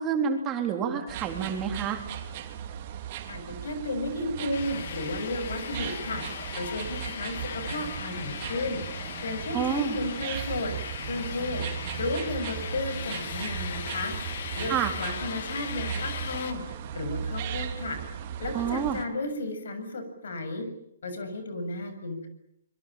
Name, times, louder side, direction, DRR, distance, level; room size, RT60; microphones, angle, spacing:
voice 1, 0.0-2.0 9.5-10.0 14.7-14.9 18.5-19.0, right 7 dB, 20° right, 4 dB, 3.7 m, -28 dB
sound 1, 1.1-19.0, right 8 dB, 40° right, 3.1 m, -37 dB
voice 2, 3.3-6.2 6.6-8.8 9.2-10.7 11.1-11.6 11.9-14.1 14.6-16.6 16.9-18.0 18.4-20.7 21.0-22.3, left 2 dB, 75° left, 9 dB, 7.1 m, -33 dB
sound 2, 4.5-16.5, left 8 dB, 55° left, 2.6 m, -39 dB
25.5 x 23.0 x 8.9 m, 0.79 s
hypercardioid pair, 150°, 0 cm